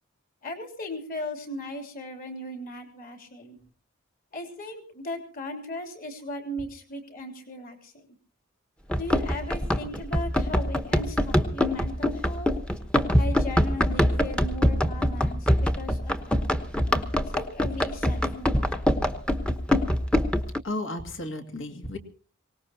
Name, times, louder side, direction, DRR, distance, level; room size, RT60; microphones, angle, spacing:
voice 1, 0.4-3.6 4.3-8.1 8.9-12.5 13.1-16.5 17.3-18.9, left 1 dB, 45° left, 4 dB, 3.2 m, -37 dB
Run, 8.9-20.6, equal, 5° left, 1.0 m, -24 dB
voice 2, 20.6-22.0, left 1 dB, 65° left, 5 dB, 2.3 m, -33 dB
24.0 x 18.5 x 2.9 m, 0.43 s
head